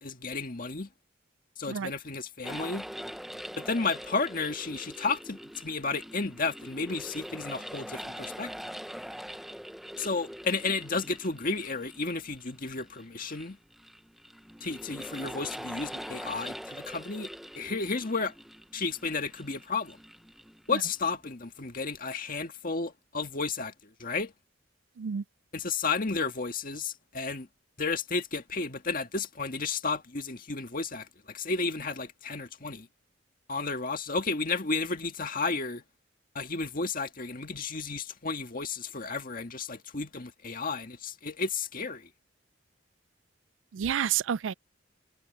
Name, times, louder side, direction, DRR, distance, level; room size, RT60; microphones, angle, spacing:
voice 1, 0.0-0.9 1.6-2.9 3.6-8.5 10.0-13.6 14.6-17.3 17.6-18.3 18.7-20.0 20.7-23.7 24.0-24.3 25.5-27.5 27.8-32.9 33.5-35.8 36.4-42.1, left 4 dB, 45° left, 1.8 m, -32 dB
sound 1, 2.4-21.1, equal, ahead, 0.6 m, -43 dB
voice 2, 43.7-44.5, right 8 dB, 75° right, 0.4 m, -29 dB
head